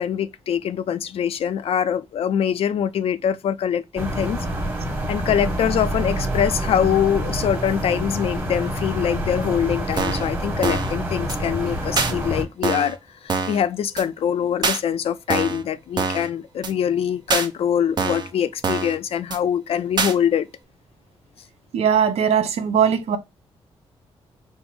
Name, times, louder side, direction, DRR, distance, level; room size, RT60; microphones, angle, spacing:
voice 1, 0.0-4.4 5.1-13.0 13.2-20.5, left 9 dB, 70° left, 0.4 m, -23 dB
sound 1, 4.0-12.4, right 1 dB, 20° right, 1.3 m, -27 dB
sound 2, 10.0-10.3 10.6-11.0 11.3-11.4 12.0-12.1 12.6-13.0 13.3-13.6 14.0-14.1 14.6-14.8 15.3-15.6 16.0-16.3 16.6-16.7 17.3-17.5 18.0-18.3 18.6-19.0 19.3-19.4 20.0-20.1, right 4 dB, 45° right, 0.7 m, -24 dB
voice 2, 21.7-23.2, right 8 dB, 85° right, 0.7 m, -19 dB
5.3 x 2.0 x 4.5 m
wide cardioid pair, 130°, 10 cm